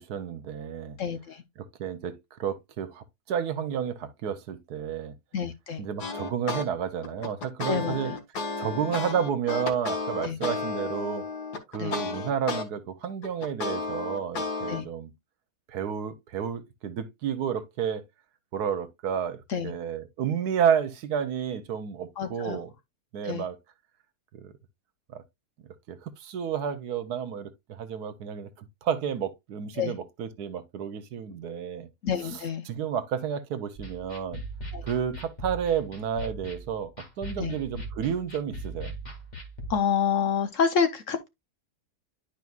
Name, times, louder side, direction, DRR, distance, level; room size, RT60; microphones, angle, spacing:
voice 1, 0.0-1.0 1.6-5.1 5.8-8.1 8.6-11.2 11.7-15.1 15.7-18.0 18.5-22.7 23.1-23.6 24.3-24.5 25.1-25.2 25.9-31.9 32.2-34.4 34.8-36.9 37.2-38.9, right 8 dB, 80° right, 1.3 m, -31 dB
voice 2, 1.0-1.4 5.3-5.8 7.7-8.2 10.2-10.4 11.8-12.0 14.7-14.8 19.5-19.7 22.2-22.6 23.2-23.5 29.8-29.9 32.0-32.6 34.7-34.8 37.4-37.5 39.7-41.3, left 7 dB, 60° left, 1.0 m, -28 dB
sound 1, 6.0-6.7 7.0-12.6 13.0-14.8, left 4 dB, 80° left, 1.8 m, -32 dB
sound 2, 33.8-39.7, right 1 dB, 25° left, 2.3 m, -40 dB
10.5 x 4.8 x 2.3 m
omnidirectional pair, 1.7 m